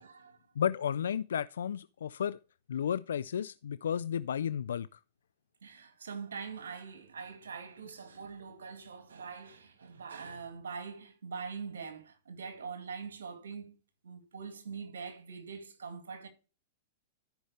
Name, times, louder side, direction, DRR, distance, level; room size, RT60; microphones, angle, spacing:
voice 1, 0.0-0.4 5.6-13.7 14.0-16.3, right 5 dB, 85° right, 2.1 m, -43 dB
voice 2, 0.6-2.4 2.7-4.9, left 8 dB, 80° left, 0.3 m, -33 dB
13.5 x 5.6 x 3.2 m
hypercardioid pair, 110°, 0 cm